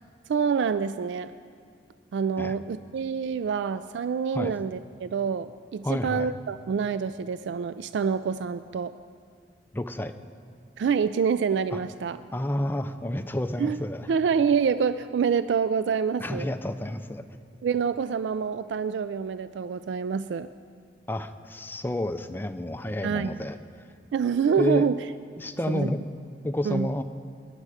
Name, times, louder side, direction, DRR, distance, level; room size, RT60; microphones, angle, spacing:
voice 1, 0.3-1.3 2.1-8.9 10.8-12.2 13.6-13.8 14.1-16.5 17.6-20.5 23.0-23.4 24.1-25.1 25.7-25.9 26.6-26.9, right 6 dB, 80° right, 13 dB, 0.3 m, -26 dB
voice 2, 5.8-6.3 9.7-10.1 12.3-14.1 16.2-17.2 21.1-23.6 24.6-24.9 25.4-26.0 26.4-27.0, left 1 dB, 10° left, 8 dB, 0.5 m, -30 dB
19.0 x 11.0 x 4.9 m, 2.2 s
head